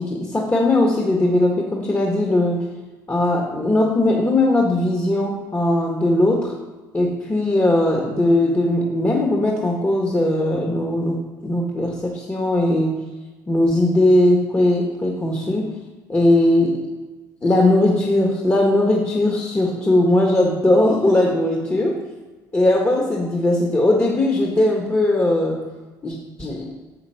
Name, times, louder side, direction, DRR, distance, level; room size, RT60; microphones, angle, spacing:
voice 1, 0.0-2.6 3.1-6.5 6.9-13.0 13.5-15.7 16.1-16.8 17.4-22.0 22.5-25.6 26.0-26.7, left 1 dB, 20° left, -1 dB, 1.5 m, -19 dB
7.1 x 5.9 x 5.8 m, 1.3 s
hypercardioid pair, 60°, 10 cm